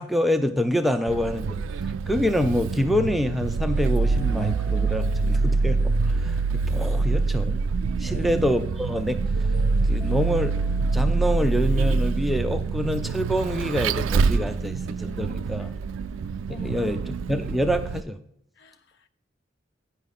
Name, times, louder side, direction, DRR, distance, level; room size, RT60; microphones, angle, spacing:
voice 1, 0.0-1.6 2.0-7.6 8.0-9.2 9.7-10.6 10.9-15.7 16.5-18.2, equal, ahead, 0.3 m, -26 dB
Vehicle, 1.1-18.0, right 4 dB, 90° right, 0.3 m, -25 dB
sound 1, 3.9-6.9 8.1-11.4, left 1 dB, 20° left, 0.7 m, -45 dB
voice 2, 8.0-8.3 15.6-16.0 16.5-17.0 18.6-19.1, left 3 dB, 60° left, 0.6 m, -46 dB
9.1 x 5.6 x 4.1 m
head